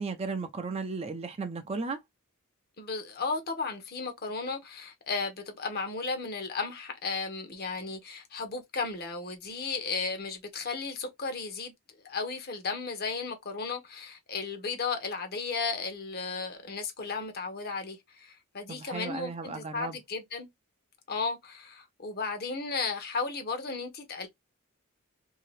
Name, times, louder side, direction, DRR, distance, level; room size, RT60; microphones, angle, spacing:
voice 1, 0.0-2.0 18.7-20.0, right 4 dB, 30° right, 0.4 m, -35 dB
voice 2, 2.8-11.7 12.0-20.5 21.1-24.3, left 4 dB, 45° left, 0.9 m, -34 dB
2.8 x 2.8 x 3.2 m
head